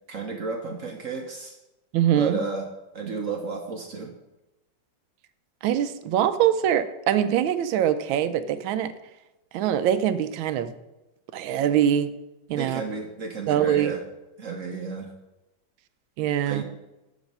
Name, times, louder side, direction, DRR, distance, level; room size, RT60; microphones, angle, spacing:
voice 1, 0.1-1.6 2.1-2.7 2.9-4.1 12.6-14.0 14.4-15.1 16.5-16.6, right 4 dB, 60° right, 3 dB, 0.8 m, -32 dB
voice 2, 1.9-2.4 5.6-8.9 9.5-10.7 11.3-12.1 12.5-12.8 13.5-13.9 16.2-16.6, right 10 dB, 80° right, 12 dB, 1.4 m, -23 dB
8.0 x 6.3 x 5.3 m, 0.98 s
omnidirectional pair, 2.2 m